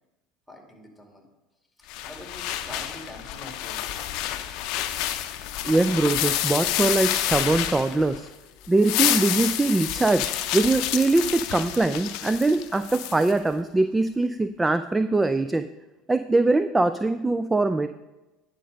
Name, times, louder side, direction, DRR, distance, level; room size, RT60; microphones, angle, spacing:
voice 1, 0.5-1.3 1.8-3.8, left 1 dB, 5° left, 2 dB, 2.3 m, -44 dB
sound 1, 1.9-8.3 8.6-13.3, left 12 dB, 65° left, 0.6 m, -29 dB
voice 2, 5.6-8.3 8.7-15.7 16.1-17.9, right 2 dB, 15° right, 11 dB, 0.4 m, -22 dB
10.0 x 5.2 x 5.3 m, 1.1 s
hypercardioid pair, 75°, 0 cm